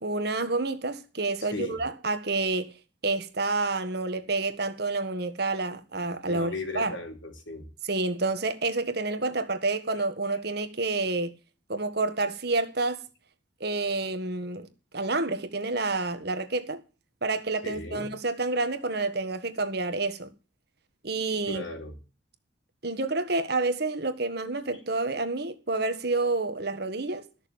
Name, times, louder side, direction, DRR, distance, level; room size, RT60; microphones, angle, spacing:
voice 1, 0.0-2.7 3.0-6.9 7.9-11.3 11.7-13.0 13.6-14.7 14.9-16.8 17.2-20.3 21.0-21.6 22.8-27.2, right 3 dB, 55° right, 1.6 m, -29 dB
voice 2, 6.3-7.7 10.0-10.1 17.6-18.1 21.5-22.0, left 2 dB, 75° left, 3.6 m, -36 dB
13.5 x 6.8 x 8.6 m
head